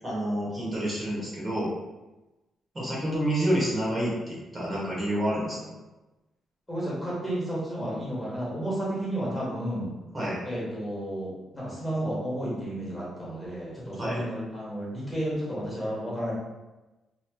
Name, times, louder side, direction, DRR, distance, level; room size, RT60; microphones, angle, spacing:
voice 1, 0.0-1.7 2.7-5.6 10.1-10.4 14.0-14.2, right 1 dB, 25° right, -6 dB, 1.1 m, -28 dB
voice 2, 6.7-9.9 10.4-16.3, right 1 dB, 10° left, -7 dB, 1.1 m, -32 dB
2.9 x 2.2 x 3.5 m, 1.1 s
cardioid pair, 120°, 0 cm